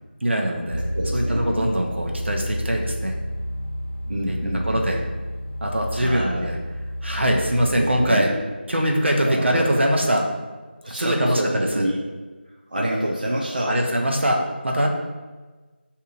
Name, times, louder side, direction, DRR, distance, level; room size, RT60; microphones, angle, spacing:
voice 1, 0.2-3.2 4.3-4.4 4.7-5.0 5.6-6.5 7.0-8.3 8.7-10.2 11.0-11.9 13.7-14.4 14.6-14.9, equal, 75° right, 1 dB, 0.8 m, -22 dB
sound 1, 0.7-8.1, equal, 80° left, 0.6 m, -30 dB
voice 2, 0.9-1.7 4.1-4.7 5.9-6.5 7.8-8.4 9.3-9.7 10.8-12.0 12.7-13.8, right 1 dB, 45° right, -3 dB, 0.5 m, -27 dB
6.6 x 2.7 x 2.5 m, 1.3 s
figure-of-eight pair, 180°, 6 cm